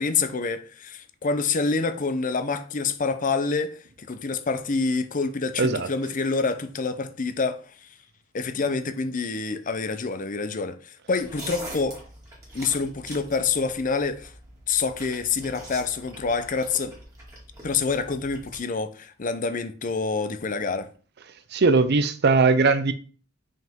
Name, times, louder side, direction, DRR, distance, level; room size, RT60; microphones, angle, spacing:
voice 1, 0.0-7.9 8.3-12.0 12.5-14.3 14.7-17.0 17.6-20.9, left 4 dB, 40° left, 0.6 m, -27 dB
voice 2, 5.6-5.9 21.5-22.9, right 4 dB, 55° right, 0.6 m, -20 dB
sound 1, 11.2-18.6, right 1 dB, 15° right, 2.3 m, -43 dB
5.7 x 5.3 x 3.6 m
head